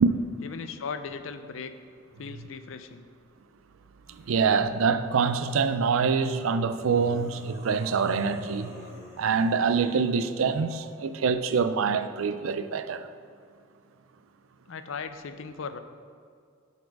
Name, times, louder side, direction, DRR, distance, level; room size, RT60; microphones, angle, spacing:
voice 1, 0.4-1.7 2.2-3.1 14.7-15.8, left 5 dB, 70° left, 0.5 m, -37 dB
sound 1, 4.1-4.6 6.7-10.1, equal, 15° right, 1.2 m, -47 dB
voice 2, 4.1-8.8 9.2-13.1, right 5 dB, 90° right, 0.4 m, -25 dB
11.5 x 4.2 x 4.7 m
head